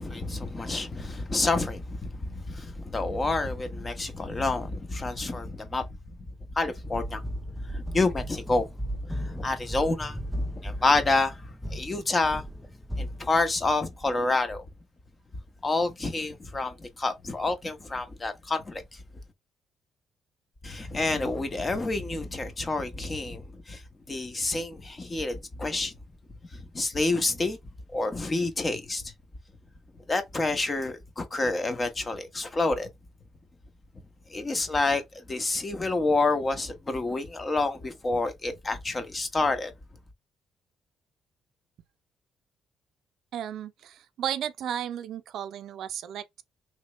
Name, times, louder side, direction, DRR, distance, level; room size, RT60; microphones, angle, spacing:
voice 1, 0.0-5.9 6.6-7.2 7.7-8.7 9.0-12.4 13.0-14.7 15.6-19.0 20.6-23.8 24.1-25.9 26.5-27.6 27.9-29.1 30.1-32.9 34.3-39.7, left 3 dB, 30° left, 0.9 m, -28 dB
sound 1, 6.8-14.1, equal, ahead, 0.6 m, -36 dB
voice 2, 43.3-46.4, right 10 dB, 75° right, 0.4 m, -34 dB
3.2 x 2.9 x 3.0 m
cardioid pair, 90°, 0 cm